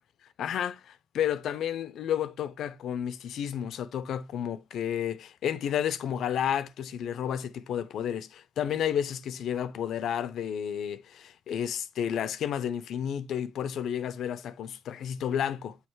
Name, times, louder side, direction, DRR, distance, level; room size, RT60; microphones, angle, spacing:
voice 1, 0.4-15.8, left 9 dB, 70° left, 0.7 m, -31 dB
8.4 x 3.3 x 4.7 m
cardioid pair, 90°, 0 cm